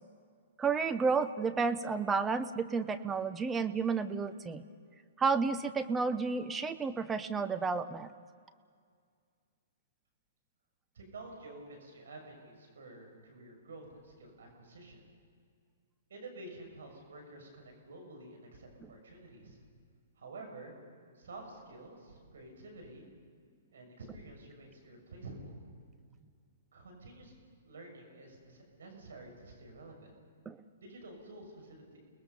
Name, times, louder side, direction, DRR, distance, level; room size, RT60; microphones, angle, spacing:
voice 1, 0.6-4.6 5.2-8.1 30.5-30.6, right 5 dB, 15° right, 10 dB, 0.8 m, -31 dB
voice 2, 10.9-15.0 16.1-19.6 20.2-20.8 21.1-23.1 23.7-25.6 26.7-27.3 27.6-30.1 30.8-32.0, right 2 dB, 75° right, 2 dB, 6.7 m, -50 dB
30.0 x 20.0 x 5.6 m, 2.1 s
hypercardioid pair, 130°, 0 cm